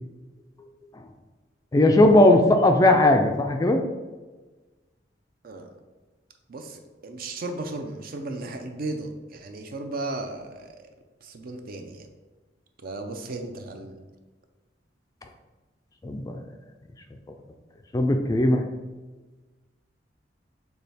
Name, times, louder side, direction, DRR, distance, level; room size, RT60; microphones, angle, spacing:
voice 1, 1.7-3.8 16.0-16.4 17.9-18.6, left 1 dB, 20° left, 5 dB, 0.3 m, -18 dB
voice 2, 6.5-10.9 11.2-12.1 12.8-14.0, right 2 dB, 55° right, 5 dB, 0.5 m, -35 dB
6.5 x 2.3 x 3.4 m, 1.2 s
head